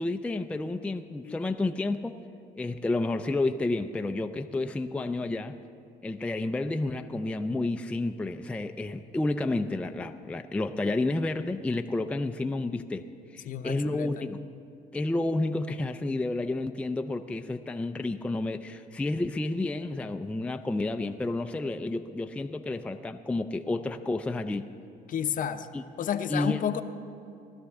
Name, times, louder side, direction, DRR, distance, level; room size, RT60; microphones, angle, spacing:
voice 1, 0.0-2.2 2.6-5.6 6.0-13.1 13.3-14.4 14.9-24.6 25.7-25.8 26.3-26.6, left 2 dB, 5° left, 6 dB, 0.4 m, -30 dB
voice 2, 13.4-14.2 25.1-25.7 26.0-26.8, left 9 dB, 50° left, 9 dB, 0.6 m, -31 dB
19.0 x 12.5 x 3.5 m, 2.6 s
cardioid pair, 110°, 17 cm